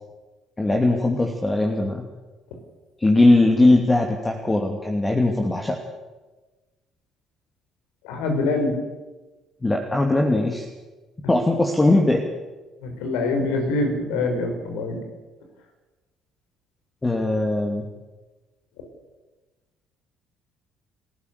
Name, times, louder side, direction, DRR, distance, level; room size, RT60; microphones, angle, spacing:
voice 1, 0.6-2.0 3.0-5.8 9.6-10.6 11.3-12.2 17.0-17.9, left 2 dB, 20° left, 2 dB, 2.8 m, -20 dB
voice 2, 8.0-8.8 12.8-15.0, left 2 dB, 70° left, 5 dB, 4.8 m, -24 dB
29.5 x 14.5 x 6.9 m, 1.2 s
hypercardioid pair, 50°, 0 cm